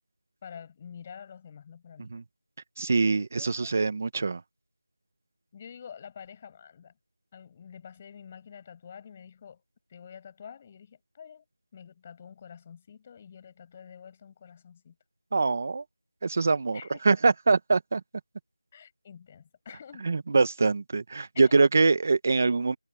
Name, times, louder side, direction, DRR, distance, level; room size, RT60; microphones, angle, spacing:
voice 1, 0.4-2.1 3.3-3.7 5.5-6.9 7.3-9.6 9.9-11.4 11.7-15.0 16.7-17.0 18.7-20.1 21.3-21.6, left 7 dB, 15° left, 5.9 m, -47 dB
voice 2, 2.8-4.4 15.3-15.8 16.2-18.0 20.0-22.8, right 4 dB, 25° right, 1.0 m, -24 dB
figure-of-eight pair, 175°, 2 cm